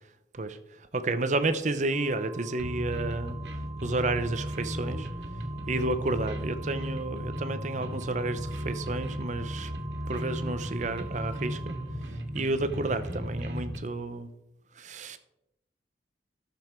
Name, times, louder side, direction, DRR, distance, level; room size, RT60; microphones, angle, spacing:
voice 1, 0.3-3.4 3.8-5.1 5.7-9.7 10.1-11.8 12.3-14.3 14.8-15.2, right 2 dB, 45° right, 11 dB, 0.8 m, -31 dB
Organ, 1.9-12.7, right 8 dB, 5° left, 1.4 m, -47 dB
sound 1, 2.6-13.8, equal, 80° right, 1.9 m, -36 dB
13.0 x 7.1 x 4.5 m, 0.86 s
head